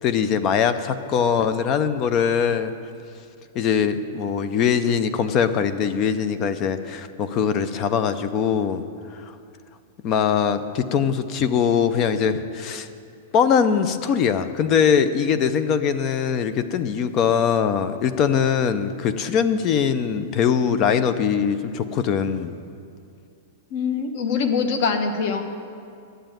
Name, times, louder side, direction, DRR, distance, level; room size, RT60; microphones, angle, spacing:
voice 1, 0.0-2.7 3.5-8.8 10.0-12.9 13.3-22.5, left 7 dB, 25° left, 12 dB, 0.5 m, -22 dB
voice 2, 23.7-25.4, left 5 dB, 40° left, 7 dB, 1.0 m, -23 dB
11.5 x 7.8 x 9.0 m, 2.4 s
supercardioid pair, 180°, 0 cm